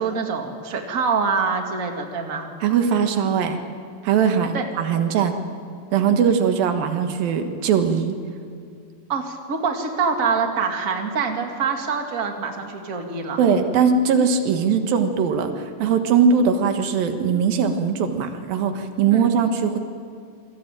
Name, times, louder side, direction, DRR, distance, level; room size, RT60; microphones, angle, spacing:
voice 1, 0.0-2.5 4.5-4.6 9.1-13.4 19.1-19.3, right 5 dB, 30° right, 3 dB, 2.0 m, -25 dB
voice 2, 2.6-3.6 4.0-5.4 5.9-8.1 13.4-19.8, right 6 dB, 85° right, 6 dB, 3.3 m, -20 dB
27.5 x 21.0 x 9.0 m, 2.3 s
omnidirectional pair, 4.0 m